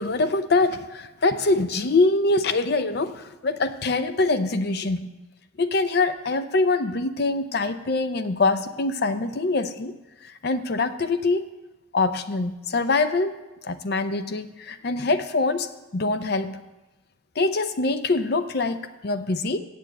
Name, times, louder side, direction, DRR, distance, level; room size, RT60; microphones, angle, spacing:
voice 1, 0.0-5.1 5.6-9.9 10.2-11.5 11.9-13.3 13.6-16.6 17.4-19.6, left 3 dB, 55° left, 10 dB, 0.6 m, -24 dB
7.4 x 6.9 x 8.2 m, 1.0 s
head